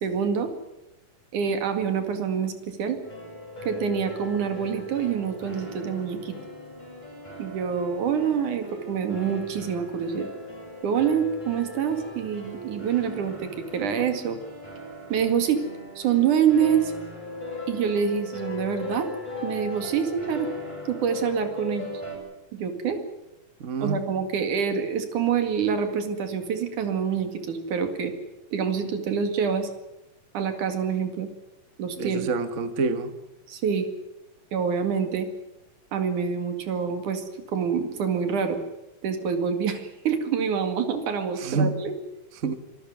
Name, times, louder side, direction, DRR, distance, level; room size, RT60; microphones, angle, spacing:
voice 1, 0.0-0.5 1.3-3.0 3.7-6.4 7.4-10.3 10.8-14.4 15.1-15.6 16.0-16.9 17.7-19.1 19.4-20.5 20.9-21.9 22.5-23.0 23.8-28.1 28.5-29.7 30.3-31.3 31.8-32.3 33.5-33.9 34.5-35.3 35.9-38.6 39.0-41.9, right 7 dB, 70° right, 7 dB, 3.6 m, -26 dB
sound 1, 3.0-22.2, left 2 dB, 10° left, 6.7 m, -38 dB
voice 2, 23.6-24.0 32.0-33.1 41.4-41.7 42.4-42.6, right 4 dB, 90° right, 10 dB, 0.6 m, -27 dB
25.0 x 14.0 x 9.5 m, 0.96 s
omnidirectional pair, 3.8 m